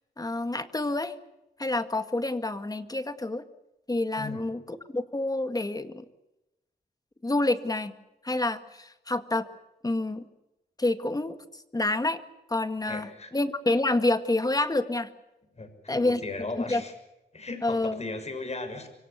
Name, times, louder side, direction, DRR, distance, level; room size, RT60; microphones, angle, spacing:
voice 1, 0.2-1.1 1.6-3.4 3.9-6.0 7.2-7.9 8.2-9.5 9.8-10.3 10.8-12.2 12.5-13.1 13.3-15.1 15.9-16.2 16.6-16.8 17.6-18.0, left 2 dB, 20° left, 9 dB, 2.0 m, -28 dB
voice 2, 12.9-13.3 15.6-16.9 17.3-18.9, left 3 dB, 40° left, 7 dB, 6.5 m, -37 dB
26.0 x 24.5 x 7.0 m, 0.96 s
wide cardioid pair, 110°, 17 cm